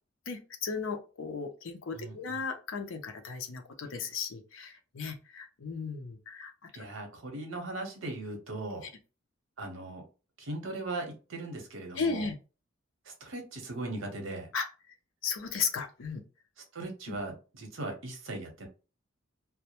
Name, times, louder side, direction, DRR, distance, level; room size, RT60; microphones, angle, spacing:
voice 1, 0.3-6.5 12.0-12.3 14.5-14.7 15.2-16.2 17.1-17.2, left 5 dB, 70° left, 5 dB, 0.5 m, -35 dB
voice 2, 1.9-2.4 6.7-8.9 9.6-10.1 10.4-12.3 13.0-14.5 16.6-18.7, right 2 dB, 75° right, 3 dB, 0.8 m, -39 dB
2.2 x 2.0 x 2.8 m, 0.33 s
head